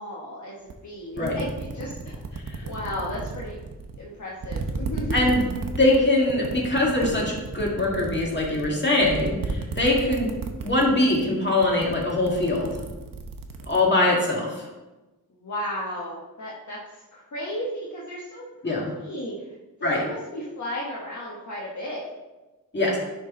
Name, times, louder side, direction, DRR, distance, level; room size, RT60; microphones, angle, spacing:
voice 1, 0.0-2.2 2.6-3.7 4.0-5.4 15.3-19.5 19.8-22.1, left 1 dB, 55° left, -4 dB, 1.1 m, -34 dB
sound 1, 0.7-0.8 1.1-4.0 4.4-10.8 11.1-11.4 11.6-13.8, right 4 dB, 70° right, 0.8 m, -33 dB
voice 2, 5.1-5.4 5.8-10.3 10.6-12.7 13.7-14.7 18.6-18.9 19.8-20.0 22.7-23.0, left 2 dB, 30° left, -3 dB, 1.9 m, -22 dB
10.5 x 3.8 x 3.7 m, 1.1 s
wide cardioid pair, 125°, 35 cm